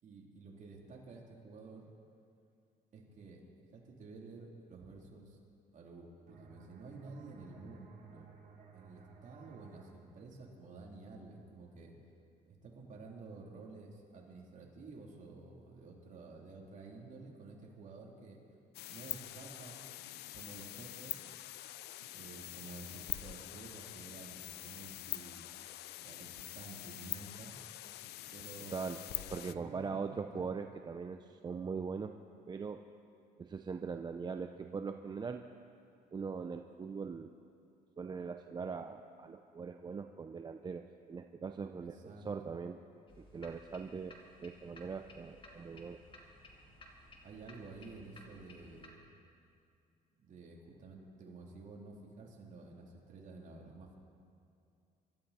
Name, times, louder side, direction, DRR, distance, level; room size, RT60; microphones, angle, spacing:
voice 1, 0.0-1.9 2.9-3.4 3.7-5.4 5.7-8.3 8.7-11.9 12.5-18.4 18.9-19.8 20.3-21.2 22.1-25.5 26.0-27.5 28.3-30.5 34.6-34.8 41.8-42.3 47.2-49.1 50.1-54.0, right 3 dB, 50° right, -1 dB, 3.1 m, -51 dB
sound 1, 6.3-11.7, right 5 dB, 65° right, 3.1 m, -59 dB
sound 2, 18.7-29.5, left 15 dB, 75° left, 0.5 m, -45 dB
voice 2, 29.3-32.2 32.5-32.8 33.4-35.4 36.1-37.3 38.0-42.8 43.2-46.0, right 5 dB, 25° right, 6 dB, 0.5 m, -41 dB
sound 3, 43.1-48.9, left 1 dB, 30° left, 2.3 m, -57 dB
24.5 x 12.5 x 4.2 m, 2.5 s
cardioid pair, 110°, 17 cm